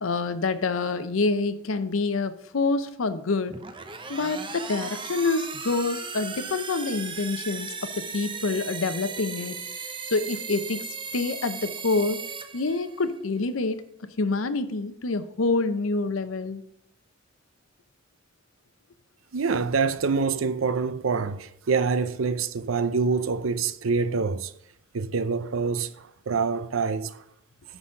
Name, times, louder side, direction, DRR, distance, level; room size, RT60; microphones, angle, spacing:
voice 1, 0.0-3.6 4.1-9.6 10.1-10.9 11.1-12.2 12.5-16.6, left 3 dB, 80° left, 0.7 m, -27 dB
sound 1, 3.5-13.2, right 5 dB, 25° right, 0.7 m, -37 dB
voice 2, 19.3-24.5 24.9-27.2, right 4 dB, 75° right, 0.6 m, -26 dB
9.7 x 4.1 x 6.3 m
head